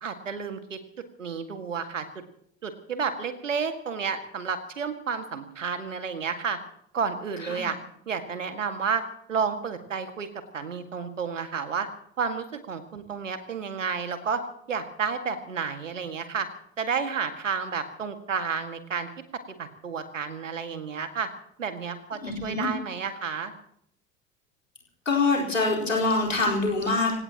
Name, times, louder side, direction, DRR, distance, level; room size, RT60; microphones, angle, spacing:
voice 1, 0.0-0.8 1.2-2.0 2.6-6.6 6.9-7.8 8.1-9.0 9.3-10.3 10.5-11.9 12.2-14.4 14.7-16.5 16.8-19.1 19.6-21.3 21.6-23.5, right 6 dB, 85° right, 8 dB, 1.9 m, -31 dB
voice 2, 22.2-22.7 25.1-27.2, left 3 dB, 90° left, -2 dB, 4.4 m, -25 dB
26.5 x 17.5 x 2.9 m, 0.70 s
figure-of-eight pair, 65°, 37 cm